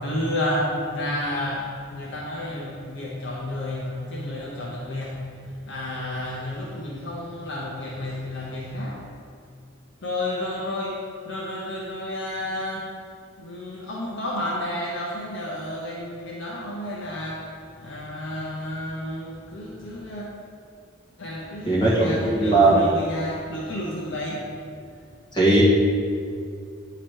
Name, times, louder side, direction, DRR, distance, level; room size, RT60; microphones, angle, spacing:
voice 1, 0.0-9.0 10.0-11.0 11.2-12.9 13.4-17.5 17.8-20.2 21.2-24.5, left 1 dB, 60° left, -4 dB, 0.8 m, -31 dB
voice 2, 21.7-22.8 25.3-25.6, right 2 dB, 20° left, -8 dB, 1.6 m, -18 dB
8.8 x 3.0 x 4.6 m, 2.3 s
head